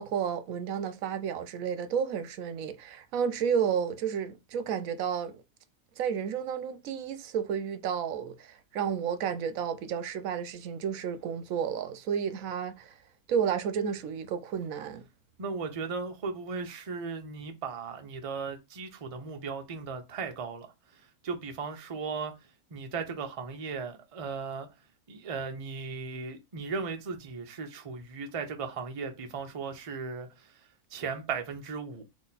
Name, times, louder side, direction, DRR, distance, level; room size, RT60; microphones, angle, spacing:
voice 1, 0.0-5.4 6.0-12.9 13.3-15.0, right 7 dB, 70° right, 1.0 m, -31 dB
voice 2, 15.4-20.7 21.2-22.4 22.7-24.7 25.1-30.5 30.9-32.0, right 5 dB, 45° right, 0.4 m, -36 dB
4.1 x 2.8 x 4.0 m
omnidirectional pair, 1.6 m